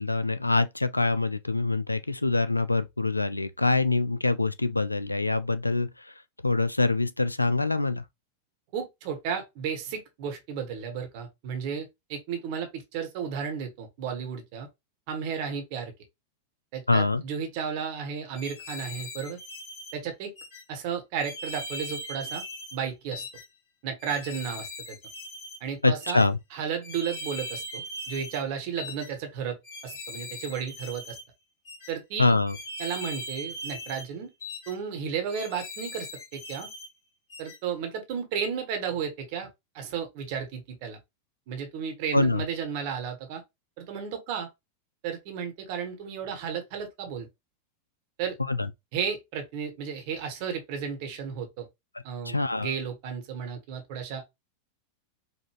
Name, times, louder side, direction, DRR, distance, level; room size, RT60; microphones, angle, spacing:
voice 1, 0.0-6.1 6.4-8.0 16.9-17.2 25.8-26.4 32.2-32.6 42.1-42.5 48.5-48.7 52.2-52.8, left 3 dB, 85° left, 0.3 m, -25 dB
voice 2, 8.7-14.7 15.1-15.9 16.7-19.4 19.9-20.3 20.7-22.4 22.7-23.2 23.8-25.0 25.6-26.2 26.5-29.6 29.8-31.2 31.9-32.3 32.8-34.3 34.7-36.7 37.4-39.5 39.7-41.0 41.5-43.4 43.8-44.5 45.0-47.3 48.2-48.4 48.9-51.7 52.0-54.2, right 7 dB, 45° right, 1.3 m, -33 dB
sound 1, 18.3-19.9 20.4-20.6 21.2-22.8 23.1-23.5 24.0-25.6 26.0-26.3 26.8-28.4 28.8-29.1 29.6-31.2 31.7-31.9 32.5-34.1 34.4-34.8 35.3-36.9 37.3-37.6, left 1 dB, 50° left, 2.0 m, -40 dB
4.8 x 2.5 x 2.9 m
figure-of-eight pair, 90°, 0 cm